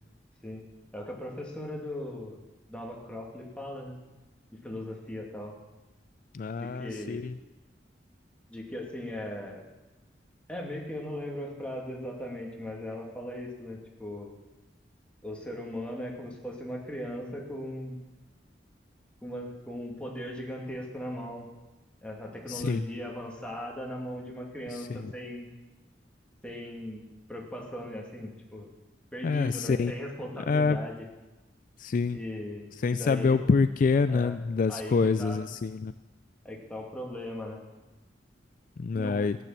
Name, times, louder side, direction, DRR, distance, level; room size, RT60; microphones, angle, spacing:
voice 1, 0.9-2.4 2.7-4.0 4.6-5.6 6.6-7.3 8.5-9.6 10.5-14.3 15.2-18.0 19.2-21.5 22.0-25.5 26.4-28.7 29.1-31.1 32.1-33.4 34.1-34.4 34.7-35.4 36.4-37.6 38.9-39.2, left 1 dB, 5° left, -1 dB, 2.5 m, -38 dB
voice 2, 6.3-7.3 22.5-22.8 24.7-25.1 29.2-29.9 30.5-30.8 31.8-32.2 32.8-35.9 38.8-39.4, left 4 dB, 50° left, 12 dB, 0.4 m, -26 dB
15.0 x 9.4 x 7.4 m, 1.1 s
head